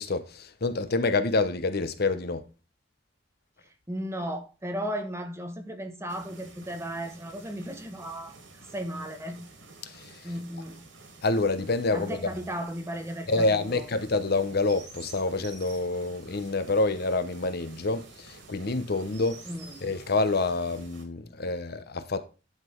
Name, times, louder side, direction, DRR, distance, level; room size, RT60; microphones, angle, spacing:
voice 1, 0.0-2.4 9.8-10.3 11.2-12.3 13.3-19.4 19.8-22.2, left 3 dB, 55° left, 0.9 m, -27 dB
voice 2, 3.9-9.4 10.2-10.8 11.9-13.8 19.5-19.8, equal, 15° right, 1.4 m, -35 dB
sound 1, 6.1-21.0, right 3 dB, 80° right, 2.8 m, -51 dB
Chirp tweet, 14.2-20.9, right 4 dB, 65° right, 4.2 m, -52 dB
11.0 x 6.0 x 4.5 m
head